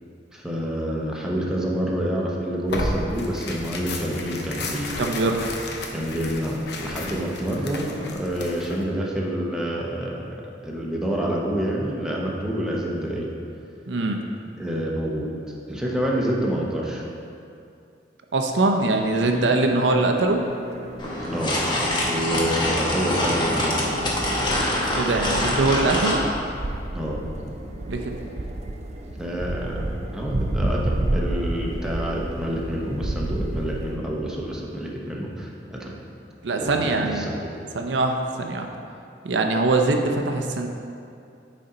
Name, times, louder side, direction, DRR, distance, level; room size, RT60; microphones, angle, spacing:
voice 1, 0.3-5.3 5.9-10.4 10.6-13.3 14.6-15.3 15.7-17.0 21.3-21.6 22.1-23.9 26.9-27.2 29.2-35.9 36.6-37.4, equal, 5° right, -4 dB, 0.8 m, -28 dB
Tearing, 2.7-8.8, left 2 dB, 70° left, 0.7 m, -33 dB
voice 2, 5.0-5.5 13.9-14.2 18.3-20.4 25.0-26.2 27.9-28.2 36.4-37.3 37.7-38.7 39.2-40.7, right 2 dB, 80° right, 3 dB, 0.6 m, -22 dB
sound 1, 18.8-34.0, right 1 dB, 40° right, 0.5 m, -31 dB
sound 2, 21.0-26.2, left 1 dB, 25° left, 1.1 m, -24 dB
9.4 x 4.2 x 3.9 m, 2.5 s
head